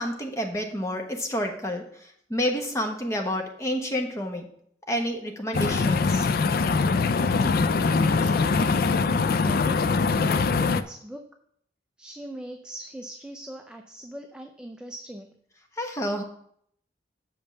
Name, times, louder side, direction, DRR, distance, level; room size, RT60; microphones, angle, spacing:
voice 1, 0.0-4.5 4.9-6.3 15.8-16.2, equal, 15° left, 3 dB, 1.1 m, -29 dB
sound 1, 5.5-10.8, left 4 dB, 55° left, 0.4 m, -22 dB
voice 2, 7.2-7.6 8.0-11.2 12.0-15.3, right 1 dB, 5° right, 4 dB, 0.5 m, -41 dB
6.8 x 5.4 x 6.7 m, 0.66 s
head